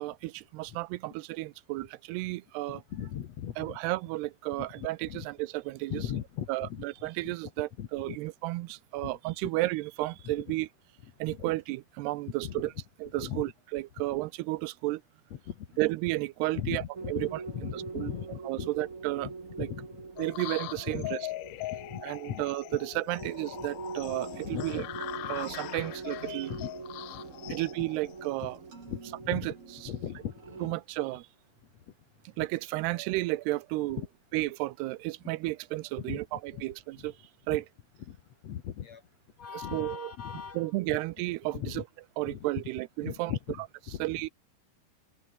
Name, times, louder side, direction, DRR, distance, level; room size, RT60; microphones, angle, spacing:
voice 1, 0.0-2.8 3.6-6.0 6.5-10.7 11.2-12.7 13.0-15.0 15.8-18.1 18.4-19.3 19.6-19.7 20.2-21.2 22.0-24.8 25.3-26.5 27.5-28.6 29.3-29.5 30.6-31.3 32.4-34.0 34.3-37.1 37.5-37.7 39.5-40.1 40.5-41.8 42.2-43.3 44.0-44.3, right 19 dB, 90° right, 2.7 m, -33 dB
voice 2, 2.7-3.8 4.6-5.3 5.9-6.8 7.2-7.3 7.8-8.2 9.0-9.1 9.4-9.5 10.2-10.3 11.3-11.5 12.4-12.6 13.2-13.4 15.3-15.7 16.5-17.3 17.5-18.7 19.2-19.3 19.6-20.0 20.9-21.2 21.8-22.4 23.2-23.3 24.4-24.9 25.2-25.4 26.5-26.7 27.1-27.6 28.9-29.5 29.9-30.3 30.6-30.7 34.0-34.1 36.0-36.2 36.5-36.6 37.0-37.1 37.5-37.6 38.1-38.2 38.4-39.0 39.4-41.0 41.5-41.8 42.3-42.4 43.0-43.6 43.9-44.0, left 10 dB, 60° left, 1.8 m, -38 dB
sound 1, 16.9-30.7, right 4 dB, 25° right, 1.9 m, -44 dB
sound 2, 20.2-28.6, left 17 dB, 80° left, 1.9 m, -41 dB
sound 3, 24.1-30.1, right 4 dB, 60° right, 8.7 m, -53 dB
omnidirectional pair, 4.7 m